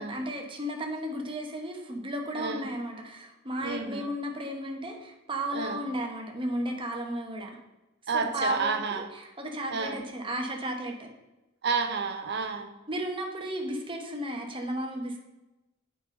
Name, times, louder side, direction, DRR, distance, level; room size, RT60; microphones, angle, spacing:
voice 1, 0.0-7.5 8.1-11.1 12.9-15.2, equal, 25° right, 2 dB, 1.1 m, -34 dB
voice 2, 2.4-2.7 3.6-4.1 5.5-5.8 8.1-9.1 9.7-10.0 11.6-12.7, right 5 dB, 55° right, 7 dB, 0.8 m, -30 dB
7.8 x 4.1 x 5.2 m, 1.0 s
head